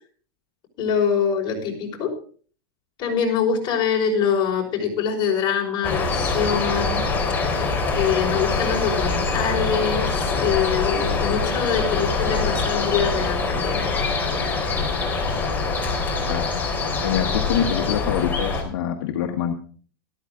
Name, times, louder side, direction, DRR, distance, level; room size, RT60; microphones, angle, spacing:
voice 1, 0.8-2.1 3.0-7.0 7.9-13.9, left 7 dB, 40° left, 0 dB, 5.5 m, -24 dB
sound 1, 5.8-18.6, left 3 dB, 15° left, 3.9 m, -24 dB
voice 2, 17.0-19.6, left 9 dB, 70° left, 3 dB, 1.5 m, -25 dB
13.5 x 13.0 x 3.8 m, 0.43 s
supercardioid pair, 135°, 12 cm